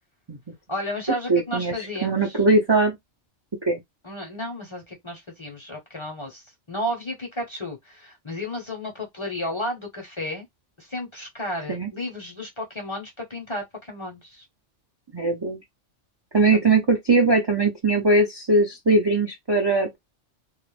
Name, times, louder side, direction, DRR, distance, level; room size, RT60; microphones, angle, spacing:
voice 1, 0.7-2.4 4.0-10.5 10.8-14.4 16.5-16.6, left 1 dB, 30° left, 0.6 m, -33 dB
voice 2, 1.3-1.7 2.0-3.0 3.7-3.8 11.7-11.9 15.1-15.6 16.3-20.0, right 3 dB, 40° right, 0.3 m, -20 dB
2.3 x 2.0 x 3.0 m
omnidirectional pair, 1.2 m